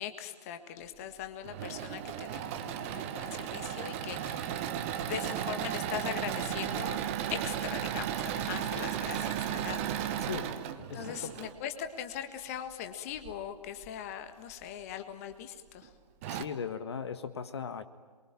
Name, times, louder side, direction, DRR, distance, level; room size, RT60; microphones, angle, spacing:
voice 1, 0.0-4.6 4.9-7.0 7.3-10.3 10.9-15.9, left 9 dB, 20° left, 8 dB, 1.7 m, -40 dB
Engine / Mechanisms, 1.2-11.5 13.1-13.9 14.5-14.6 14.9-15.0 15.8-15.9 16.2-16.4, right 10 dB, 20° right, 1.3 m, -35 dB
voice 2, 10.9-11.3 16.3-17.8, left 6 dB, 40° left, 10 dB, 1.7 m, -38 dB
28.0 x 23.5 x 9.0 m, 1.4 s
figure-of-eight pair, 155°, 21 cm